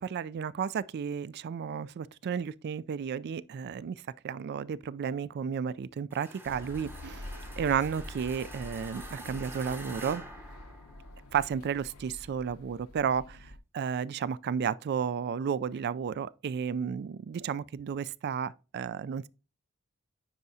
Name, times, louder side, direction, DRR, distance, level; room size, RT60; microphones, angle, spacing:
voice 1, 0.0-10.2 11.3-19.3, right 7 dB, 50° right, 0.3 m, -33 dB
sound 1, 6.1-11.3, right 2 dB, 10° right, 0.9 m, -47 dB
sound 2, 6.4-13.6, left 1 dB, 80° left, 0.7 m, -46 dB
9.6 x 4.8 x 2.7 m
head